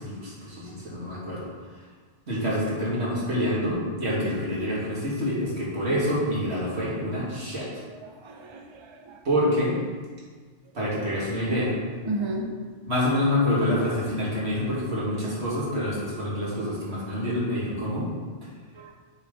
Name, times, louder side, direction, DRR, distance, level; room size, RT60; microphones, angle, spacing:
voice 1, 0.0-1.4 2.3-7.7 9.2-9.7 10.7-11.7 12.9-18.1, left 1 dB, 80° right, -7 dB, 2.4 m, -27 dB
voice 2, 8.0-9.2 12.0-12.5 18.7-18.9, right 2 dB, 30° right, 2 dB, 0.6 m, -34 dB
7.1 x 4.3 x 5.2 m, 1.5 s
omnidirectional pair, 1.1 m